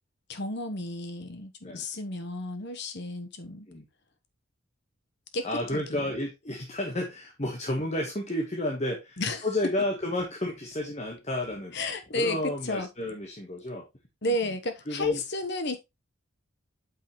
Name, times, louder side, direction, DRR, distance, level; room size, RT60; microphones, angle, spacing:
voice 1, 0.3-3.7 5.3-5.5 5.7-6.0 9.2-9.5 11.7-12.9 14.2-15.8, left 2 dB, 50° left, 1.1 m, -32 dB
voice 2, 5.4-11.7 12.1-13.8 14.3-14.5 14.9-15.2, left 1 dB, 30° left, 1.3 m, -31 dB
8.7 x 5.6 x 3.1 m
head